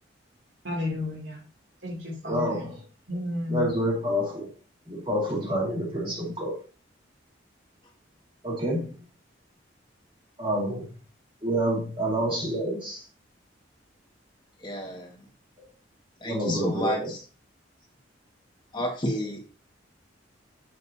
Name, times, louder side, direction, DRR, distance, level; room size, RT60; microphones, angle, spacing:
voice 1, 0.6-1.4 1.8-2.6 3.1-3.7, left 2 dB, 70° right, 3.0 m, -32 dB
voice 2, 2.2-2.8 3.5-4.5 4.9-6.6 8.4-8.9 10.4-11.0 11.4-13.0 16.2-17.2, equal, 25° right, 2.5 m, -28 dB
voice 3, 14.6-15.3 16.2-17.2 18.7-19.4, equal, 25° left, 1.9 m, -31 dB
6.9 x 6.5 x 2.9 m
head